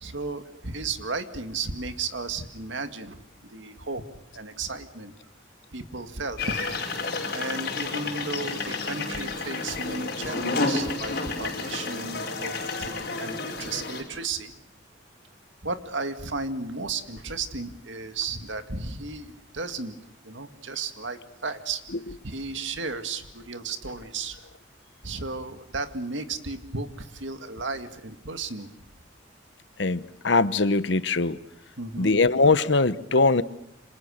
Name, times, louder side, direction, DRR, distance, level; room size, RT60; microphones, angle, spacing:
voice 1, 0.0-3.2 3.5-4.0 4.3-5.1 5.7-6.6 7.3-14.5 15.6-20.0 20.2-21.8 22.2-24.4 25.0-28.7 31.8-32.1, right 4 dB, 80° right, 2.1 m, -34 dB
sound 1, 6.4-14.0, left 3 dB, 50° left, 5.5 m, -30 dB
voice 2, 29.8-31.4 32.0-33.4, left 3 dB, 70° left, 1.0 m, -21 dB
28.5 x 26.5 x 6.6 m
head